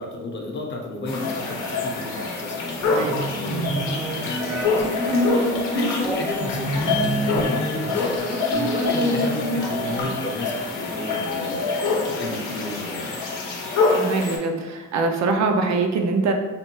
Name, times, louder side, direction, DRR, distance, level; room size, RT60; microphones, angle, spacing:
voice 1, 0.0-11.6 12.1-13.2, left 2 dB, 40° left, 1 dB, 0.7 m, -32 dB
sound 1, 1.1-14.4, left 3 dB, 90° left, 0.7 m, -26 dB
sound 2, 2.8-10.0, equal, 5° right, 0.5 m, -27 dB
voice 2, 13.9-16.3, right 3 dB, 65° right, 4 dB, 0.5 m, -23 dB
3.2 x 2.1 x 3.0 m, 1.3 s
cardioid pair, 90°, 30 cm